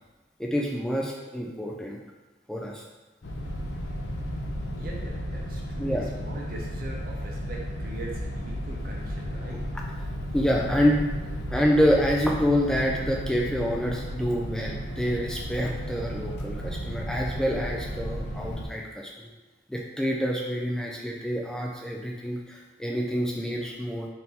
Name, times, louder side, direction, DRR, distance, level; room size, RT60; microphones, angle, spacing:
voice 1, 0.4-2.0 2.5-2.8 5.8-6.0 10.3-11.1 11.5-19.3 19.7-24.1, equal, 5° left, -2 dB, 0.3 m, -27 dB
sound 1, 3.2-18.7, equal, 60° left, 0.5 m, -34 dB
voice 2, 4.7-9.6, right 2 dB, 50° right, -2 dB, 0.6 m, -41 dB
3.6 x 2.7 x 4.1 m, 1.2 s
head